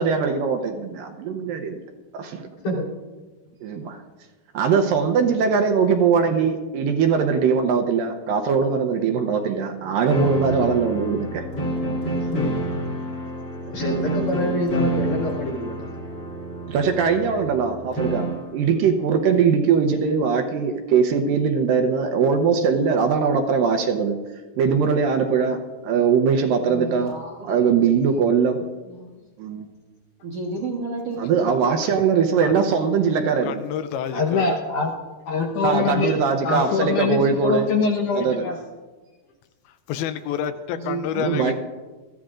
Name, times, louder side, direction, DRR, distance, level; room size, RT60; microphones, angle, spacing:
voice 1, 0.0-1.7 2.1-2.5 3.6-4.0 4.6-11.5 13.8-13.9 16.7-24.2 24.6-25.6 25.8-27.1 27.4-28.6 29.4-29.7 31.2-33.6 35.6-37.7 38.1-38.5 41.2-41.5, right 6 dB, 75° right, 5 dB, 2.3 m, -21 dB
sound 1, 10.1-18.5, equal, 35° left, 2.0 m, -28 dB
voice 2, 13.7-15.9, left 1 dB, 50° left, -4 dB, 4.4 m, -26 dB
voice 3, 26.6-28.3 28.8-29.2 30.2-31.6 33.0-33.2 39.0-39.2 40.7-41.5, right 3 dB, 55° right, -3 dB, 1.7 m, -33 dB
voice 4, 33.4-34.5 39.9-41.5, left 9 dB, 85° left, 10 dB, 2.5 m, -29 dB
voice 5, 34.1-34.9 35.3-36.1 36.4-38.6, left 4 dB, 70° left, 1 dB, 2.2 m, -23 dB
21.5 x 14.5 x 2.5 m, 1.3 s
omnidirectional pair, 4.4 m